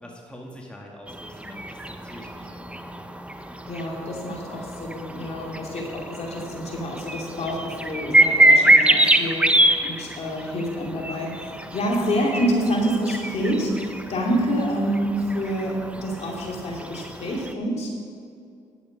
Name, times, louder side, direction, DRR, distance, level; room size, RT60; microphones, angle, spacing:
voice 1, 0.0-3.0, equal, 10° left, -1 dB, 1.8 m, -44 dB
sound 1, 1.1-17.5, right 1 dB, 10° right, 0.8 m, -25 dB
voice 2, 3.7-17.9, equal, 55° left, -2 dB, 2.7 m, -27 dB
11.0 x 7.9 x 5.2 m, 2.4 s
supercardioid pair, 60°, 13 cm